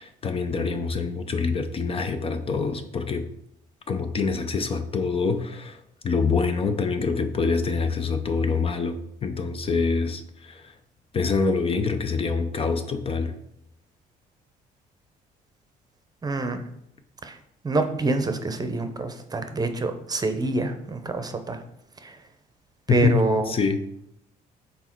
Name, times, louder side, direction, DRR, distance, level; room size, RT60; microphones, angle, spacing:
voice 1, 0.0-3.3 3.9-10.7 11.1-13.3 22.9-23.8, left 4 dB, 35° left, 8 dB, 0.6 m, -25 dB
voice 2, 16.2-16.7 17.2-17.4 17.6-21.6 22.0-22.2 22.9-23.5, right 3 dB, 25° right, 7 dB, 0.7 m, -26 dB
6.2 x 4.1 x 4.6 m, 0.76 s
cardioid pair, 110°, 17 cm